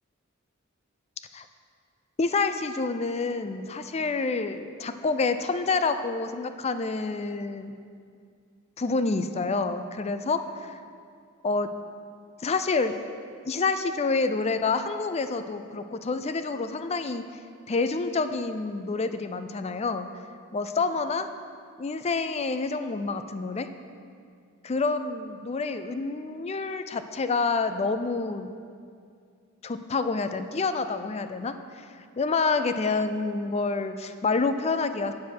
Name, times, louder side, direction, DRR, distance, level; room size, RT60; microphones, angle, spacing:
voice 1, 2.2-7.7 8.8-10.7 11.4-11.7 12.4-13.0 13.5-17.2 17.7-20.1 20.5-21.3 21.8-23.7 24.6-28.5 29.6-31.8 32.2-35.1, left 4 dB, 30° left, 10 dB, 0.4 m, -28 dB
8.4 x 7.1 x 6.0 m, 2.2 s
head